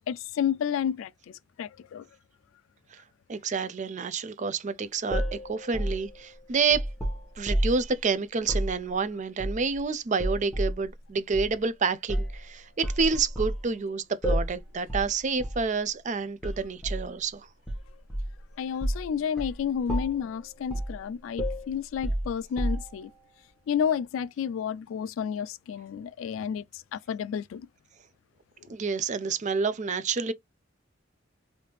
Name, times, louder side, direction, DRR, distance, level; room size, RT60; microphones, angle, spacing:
voice 1, 0.1-2.1 18.6-23.1 23.7-27.7, left 8 dB, 85° left, 0.3 m, -31 dB
voice 2, 3.3-6.8 7.4-17.5 28.7-30.3, right 5 dB, 40° right, 0.4 m, -28 dB
sound 1, 5.1-7.9 8.4-8.7 9.4-9.8 10.2-10.8 11.3-11.5 12.1-12.4 12.8-13.6 14.2-14.6 14.9-15.1 15.4-15.6 16.4-17.1 17.7-18.4 18.8-19.1 19.4-19.6 19.9-20.3 20.7-21.0 21.4-23.0, equal, ahead, 0.9 m, -30 dB
3.3 x 2.7 x 3.0 m
head